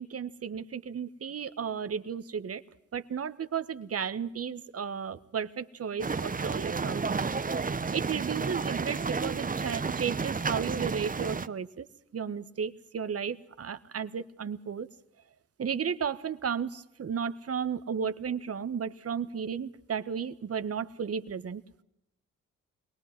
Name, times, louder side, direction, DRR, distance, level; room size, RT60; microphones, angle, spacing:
voice 1, 0.0-2.6 2.9-7.2 7.9-11.9 12.1-14.9 15.6-21.6, right 7 dB, 55° right, 13 dB, 1.4 m, -34 dB
sound 1, 6.0-11.5, right 4 dB, 30° right, 1.0 m, -31 dB
23.0 x 19.0 x 7.6 m, 0.81 s
cardioid pair, 70°, 29 cm